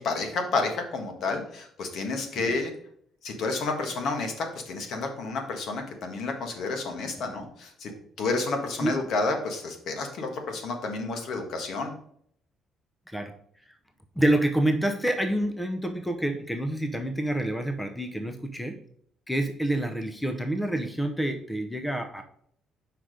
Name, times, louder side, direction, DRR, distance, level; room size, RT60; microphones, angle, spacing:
voice 1, 0.0-2.7 3.2-7.9 8.2-11.9, left 3 dB, 65° left, 4 dB, 1.6 m, -30 dB
voice 2, 14.2-18.8 19.3-22.2, right 1 dB, 5° left, 6 dB, 0.6 m, -27 dB
5.8 x 4.9 x 5.0 m, 0.65 s
cardioid pair, 130°, 0 cm